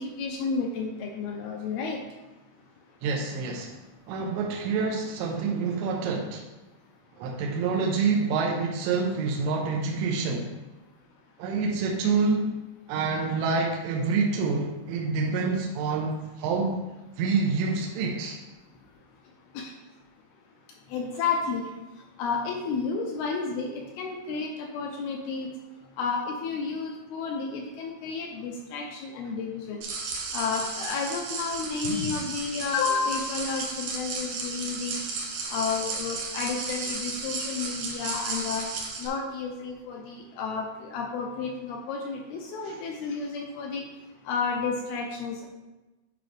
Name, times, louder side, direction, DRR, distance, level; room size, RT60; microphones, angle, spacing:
voice 1, 0.0-2.0 19.5-19.7 20.9-21.7 22.2-25.5 26.0-29.8 30.3-35.0 35.5-38.7 39.0-43.9 44.3-45.5, left 5 dB, 80° left, 1 dB, 2.3 m, -31 dB
voice 2, 3.0-3.8 4.1-6.5 7.2-10.5 11.4-12.6 12.9-16.8 17.2-18.4 42.7-42.8, right 4 dB, 85° right, 0 dB, 2.9 m, -27 dB
sound 1, 29.8-39.1, right 4 dB, 65° right, 2.3 m, -34 dB
11.0 x 5.0 x 3.3 m, 1.1 s
omnidirectional pair, 5.3 m